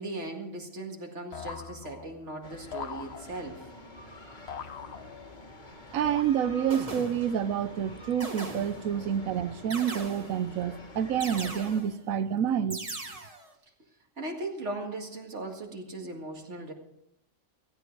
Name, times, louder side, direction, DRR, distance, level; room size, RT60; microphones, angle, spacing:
voice 1, 0.0-3.7 14.2-16.7, right 2 dB, 60° right, 2.2 m, -38 dB
sound 1, 1.3-2.3 2.7-3.7 4.5-5.5 6.0-6.8, left 7 dB, 55° left, 1.0 m, -42 dB
sound 2, 2.4-11.8, left 1 dB, 35° left, 1.9 m, -47 dB
sound 3, 5.7-5.9 6.7-7.5 8.2-9.0 9.7-10.5 11.2-12.0 12.7-13.5, right 2 dB, 25° right, 1.5 m, -40 dB
voice 2, 5.9-12.8, right 9 dB, 85° right, 1.1 m, -28 dB
16.0 x 15.0 x 4.6 m
omnidirectional pair, 1.4 m